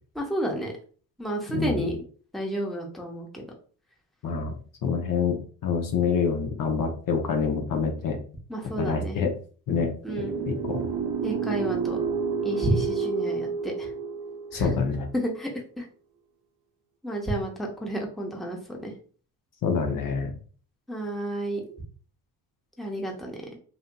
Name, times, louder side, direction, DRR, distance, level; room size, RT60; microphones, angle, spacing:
voice 1, 0.1-0.7 1.2-2.0 2.3-3.4 8.5-9.2 10.0-10.4 11.2-12.0 12.4-13.9 14.5-14.7 15.1-15.9 17.0-18.9 20.9-21.6 22.8-23.6, right 1 dB, ahead, -1 dB, 0.9 m, -31 dB
voice 2, 1.5-1.9 4.2-4.5 4.8-8.2 8.8-9.3 9.7-9.9 10.5-10.9 14.5-15.1 19.6-20.3, left 5 dB, 55° left, 3 dB, 0.7 m, -26 dB
sound 1, 10.1-15.2, right 6 dB, 65° right, 0.6 m, -30 dB
2.7 x 2.7 x 2.2 m, 0.42 s
supercardioid pair, 65°, 40 cm